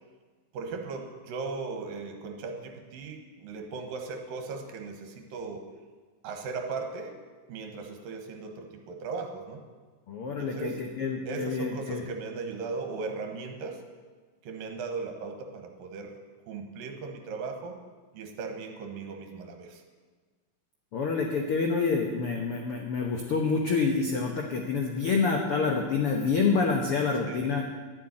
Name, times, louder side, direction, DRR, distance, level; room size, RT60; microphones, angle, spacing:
voice 1, 0.5-5.6 6.2-7.1 7.5-9.6 10.3-10.8 11.3-13.8 14.4-16.2 16.5-17.8 18.1-19.8 27.3-27.5, right 4 dB, 75° right, 4 dB, 3.0 m, -37 dB
voice 2, 10.1-12.0 20.9-27.6, left 4 dB, 85° left, 2 dB, 1.2 m, -27 dB
11.5 x 7.7 x 9.8 m, 1.4 s
omnidirectional pair, 4.1 m